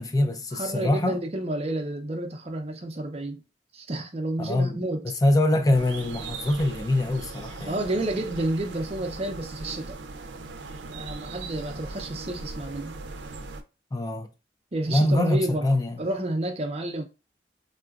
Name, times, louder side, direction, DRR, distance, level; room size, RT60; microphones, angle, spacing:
voice 1, 0.0-1.2 4.4-4.9 5.2-8.3 13.9-14.3 14.9-16.0, left 1 dB, 20° left, 0.3 m, -24 dB
voice 2, 0.5-3.4 3.7-5.0 7.6-10.0 10.8-12.9 14.7-15.7 16.0-17.0, right 1 dB, 35° right, 0.6 m, -30 dB
sound 1, 5.7-13.6, right 3 dB, 80° right, 0.5 m, -39 dB
3.8 x 2.3 x 2.3 m
head